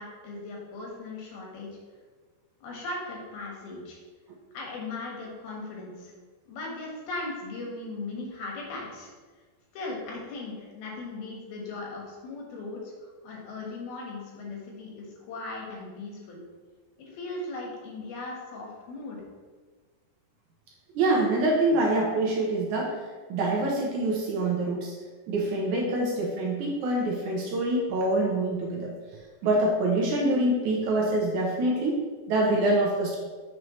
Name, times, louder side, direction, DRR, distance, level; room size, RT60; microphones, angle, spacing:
voice 1, 0.0-1.7 2.6-4.0 4.5-6.1 6.5-9.1 9.7-16.4 17.0-19.2, left 2 dB, 90° left, -2 dB, 3.4 m, -38 dB
voice 2, 21.0-23.0 23.3-24.9 25.3-28.9 29.4-33.2, right 2 dB, 70° right, -2 dB, 2.0 m, -25 dB
7.5 x 6.3 x 3.2 m, 1.4 s
omnidirectional pair, 4.2 m